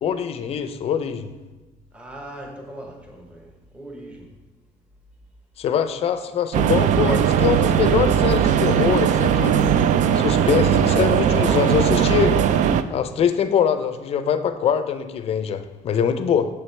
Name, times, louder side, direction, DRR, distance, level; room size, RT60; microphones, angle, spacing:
voice 1, 0.0-1.3 5.6-9.6 10.2-12.4 12.9-16.5, left 7 dB, 45° left, 10 dB, 0.5 m, -23 dB
voice 2, 1.9-3.5 3.7-4.3, right 1 dB, 10° right, 0 dB, 0.9 m, -39 dB
sound 1, 6.5-12.8, right 8 dB, 60° right, 0.4 m, -19 dB
7.0 x 6.8 x 3.3 m, 1.2 s
cardioid pair, 160°, 15 cm